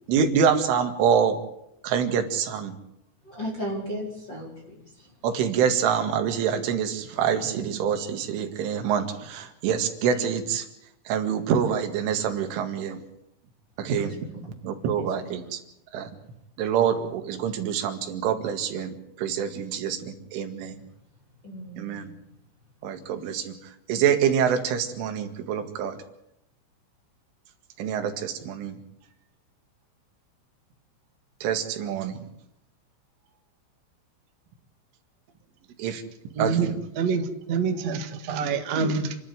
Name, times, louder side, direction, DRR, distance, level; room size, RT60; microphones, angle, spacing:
voice 1, 0.1-1.4 1.8-2.8 5.2-10.7 11.1-13.0 13.8-14.1 14.4-15.6 15.9-16.1 16.6-20.8 21.8-22.1 22.8-23.6 23.9-26.0 27.8-28.8 31.4-32.2 35.8-36.0 36.4-36.8, right 7 dB, 75° right, 6 dB, 4.4 m, -26 dB
voice 2, 3.3-4.8 13.9-14.1 14.9-15.1 21.4-22.1, equal, 25° left, -1 dB, 4.8 m, -35 dB
voice 3, 36.3-39.2, right 5 dB, 55° right, 5 dB, 1.9 m, -27 dB
29.5 x 12.0 x 9.5 m, 0.81 s
omnidirectional pair, 5.8 m